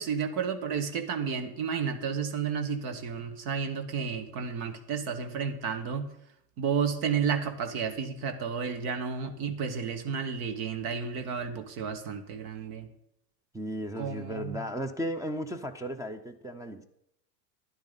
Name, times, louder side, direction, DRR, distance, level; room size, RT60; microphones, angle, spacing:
voice 1, 0.0-6.1 6.6-12.9 14.0-14.6, right 6 dB, 65° right, 1.5 m, -32 dB
voice 2, 13.5-16.8, equal, 5° right, 0.5 m, -35 dB
11.0 x 10.5 x 3.9 m
hypercardioid pair, 100°, 48 cm